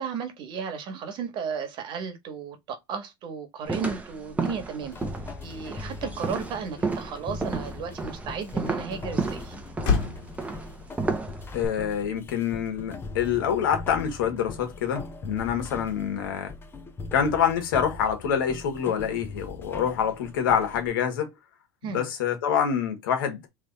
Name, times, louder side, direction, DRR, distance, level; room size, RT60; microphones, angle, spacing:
voice 1, 0.0-5.0 5.4-9.5 21.8-22.1, right 6 dB, 45° right, 1.4 m, -34 dB
sound 1, 3.7-11.7, right 4 dB, 10° right, 0.8 m, -32 dB
sound 2, 4.9-20.9, left 3 dB, 20° left, 0.8 m, -40 dB
Motor vehicle (road), 9.8-14.4, left 6 dB, 60° left, 1.7 m, -36 dB
voice 2, 11.5-16.5 17.1-21.3 21.8-23.5, left 8 dB, 85° left, 1.5 m, -26 dB
3.4 x 3.1 x 4.0 m
supercardioid pair, 125°, 11 cm